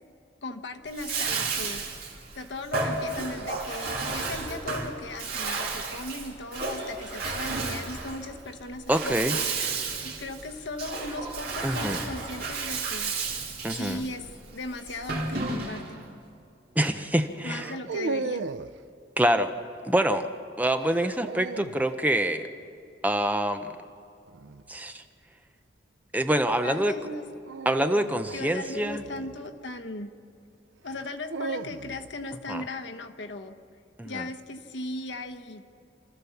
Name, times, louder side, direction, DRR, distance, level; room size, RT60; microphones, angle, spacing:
voice 1, 0.4-1.8 2.3-9.2 10.0-13.1 13.7-16.0 17.4-18.5 26.6-27.2 28.3-30.1 30.8-33.6 34.0-35.6, left 2 dB, 75° left, 5 dB, 1.1 m, -37 dB
Bathtub (filling or washing), 0.9-16.0, right 4 dB, 60° right, 2.9 m, -32 dB
voice 2, 8.9-9.4 11.6-12.0 13.6-14.0 16.8-17.7 19.2-19.5 19.8-20.3 20.6-22.5 23.0-23.8 24.7-25.0 26.1-26.9 27.7-29.0 32.5-32.6 34.0-34.3, right 1 dB, 10° right, 7 dB, 0.7 m, -26 dB
sound 1, 15.9-16.0 17.5-18.8 20.8-21.8 24.3-24.7 27.4-29.8 30.9-32.2, right 3 dB, 90° right, 0.6 m, -36 dB
28.0 x 13.5 x 7.1 m, 2.6 s
head